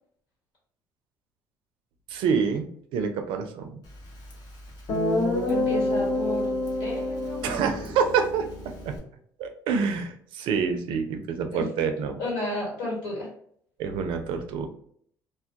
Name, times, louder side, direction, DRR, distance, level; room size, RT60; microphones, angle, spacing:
voice 1, 2.1-3.8 7.4-8.5 8.8-8.9 9.4-12.2 13.8-14.7, right 6 dB, 75° right, 6 dB, 0.4 m, -27 dB
Guitar, 4.3-4.4 4.9-9.0, left 1 dB, 60° left, 0.8 m, -27 dB
voice 2, 5.5-7.6 11.5-11.6 12.2-13.3, left 2 dB, 80° left, -4 dB, 1.3 m, -33 dB
2.2 x 2.1 x 2.7 m, 0.62 s
supercardioid pair, 70°, 9 cm